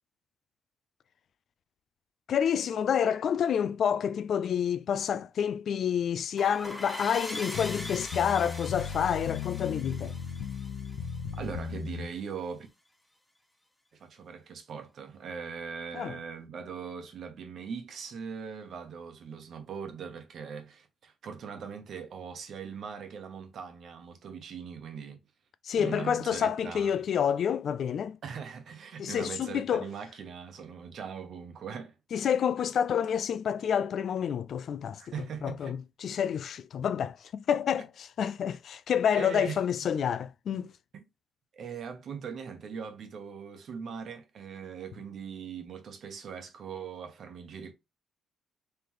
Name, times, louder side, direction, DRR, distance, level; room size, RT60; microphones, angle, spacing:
voice 1, 2.3-10.1 15.9-16.2 25.6-28.2 29.0-29.9 32.1-35.0 35.4-40.7, left 8 dB, 60° left, 0.3 m, -28 dB
sound 1, 6.4-11.7, left 1 dB, 10° left, 0.8 m, -42 dB
sound 2, 7.5-12.1, left 7 dB, 85° left, 0.8 m, -36 dB
voice 2, 11.4-12.7 14.0-25.2 25.8-26.9 28.2-31.9 35.0-35.8 39.2-39.6 40.9-41.0 41.5-47.7, right 6 dB, 60° right, 1.0 m, -40 dB
3.8 x 3.4 x 3.0 m
cardioid pair, 90°, 0 cm